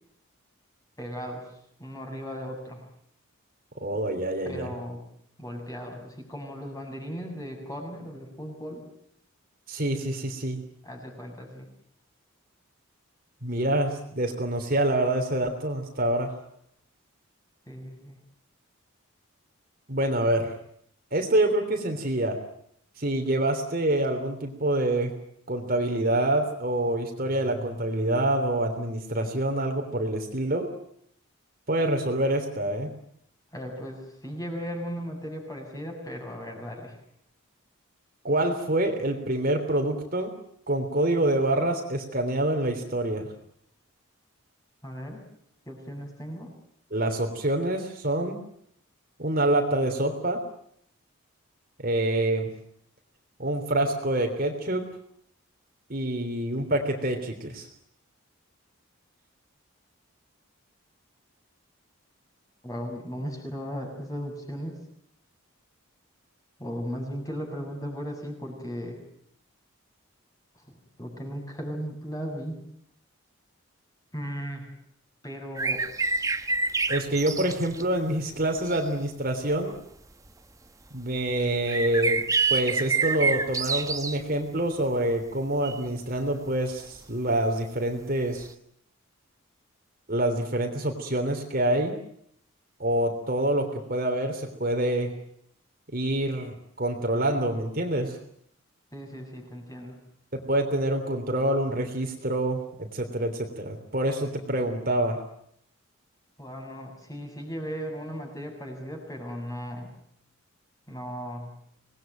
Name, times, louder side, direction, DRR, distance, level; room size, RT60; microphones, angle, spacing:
voice 1, 1.0-1.5 1.8-2.9 4.4-5.0 5.4-8.8 10.8-11.7 17.7-18.2 33.5-37.0 44.8-45.2 45.7-46.5 62.6-64.8 66.6-69.0 70.7-72.6 74.1-74.7 75.2-75.9 98.9-100.0 106.4-109.9 110.9-111.5, equal, 15° left, 2 dB, 7.1 m, -36 dB
voice 2, 3.8-4.7 9.7-10.6 13.4-16.3 19.9-20.5 21.1-22.4 23.0-25.1 25.5-30.7 31.7-32.9 38.2-40.3 40.7-43.3 46.9-48.4 49.2-50.4 51.8-52.5 53.4-54.8 55.9-57.7 76.9-79.8 80.9-82.2 82.5-88.5 90.1-91.9 92.8-95.1 95.9-98.2 100.3-105.2, right 1 dB, 40° right, 4 dB, 3.3 m, -26 dB
sound 1, 75.6-77.8 78.8-78.9 79.7-79.8 81.6-84.2 85.6-85.8 88.4-88.5, right 4 dB, 15° right, 1.0 m, -27 dB
26.5 x 20.0 x 9.2 m, 0.70 s
head